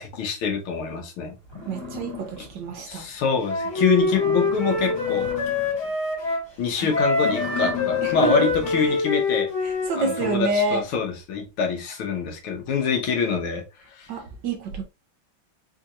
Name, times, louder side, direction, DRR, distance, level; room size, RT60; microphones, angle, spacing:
voice 1, 0.0-1.3 2.4-2.5 2.9-5.3 6.6-9.5 10.0-13.6 14.0-14.1, left 5 dB, 85° left, 1.9 m, -25 dB
sound 1, 1.0-1.1 1.4-2.8 3.2-3.3 3.7-3.8 4.0-5.9 6.3-6.6 7.1-9.1, left 5 dB, 15° left, 1.0 m, -36 dB
voice 2, 1.7-3.2 6.8-6.9 8.0-8.5 8.8-9.0 9.6-10.9 14.1-14.8, right 2 dB, 70° right, 1.2 m, -27 dB
Wind instrument woodwind instrument, 3.5-6.5 6.9-10.4, left 3 dB, 50° left, 2.5 m, -25 dB
4.3 x 2.8 x 2.5 m
omnidirectional pair, 2.3 m